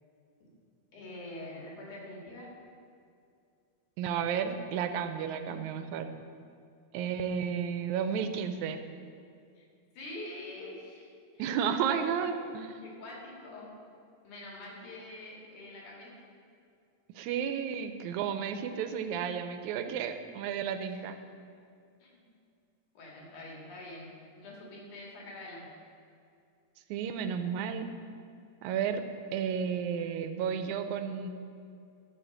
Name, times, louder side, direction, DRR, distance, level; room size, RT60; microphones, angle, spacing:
voice 1, 0.9-2.5 5.4-5.6 9.6-9.7 10.0-11.1 11.3-11.5 11.9-12.4 12.8-13.7 14.2-16.1 20.9-21.0 22.0-22.2 23.0-24.1 24.4-25.7, left 1 dB, 85° left, -3 dB, 3.5 m, -45 dB
voice 2, 4.0-6.1 6.9-8.8 11.4-12.8 17.2-21.2 26.9-27.9 28.6-29.0 29.3-31.3, right 7 dB, 80° right, 8 dB, 2.0 m, -32 dB
13.5 x 4.6 x 6.5 m, 2.4 s
omnidirectional pair, 3.4 m